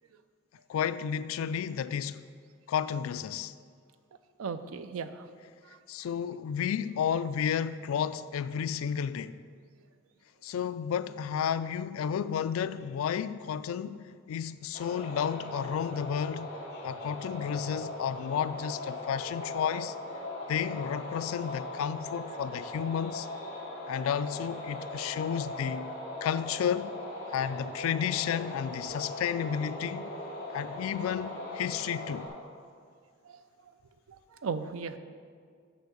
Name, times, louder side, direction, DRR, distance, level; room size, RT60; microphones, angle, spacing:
voice 1, 0.7-2.2 2.7-3.5 5.9-9.4 10.4-14.0 14.3-16.6 16.8-19.9 20.5-23.3 23.9-25.9 26.2-27.0 27.3-30.1 30.5-32.3, left 8 dB, 85° left, 0.3 m, -32 dB
voice 2, 4.4-5.3 5.7-5.8 20.4-20.5 33.2-33.4 34.1-35.0, right 5 dB, 90° right, 0.5 m, -37 dB
sound 1, 14.7-32.3, left 2 dB, 35° left, 1.9 m, -40 dB
8.3 x 4.5 x 6.7 m
head